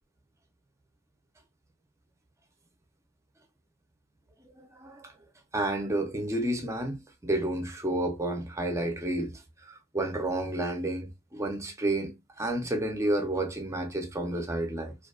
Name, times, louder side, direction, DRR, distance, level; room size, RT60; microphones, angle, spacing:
voice 1, 4.6-5.1 5.5-9.3 9.7-15.0, right 1 dB, 15° right, 0.5 m, -31 dB
2.4 x 2.2 x 2.4 m
head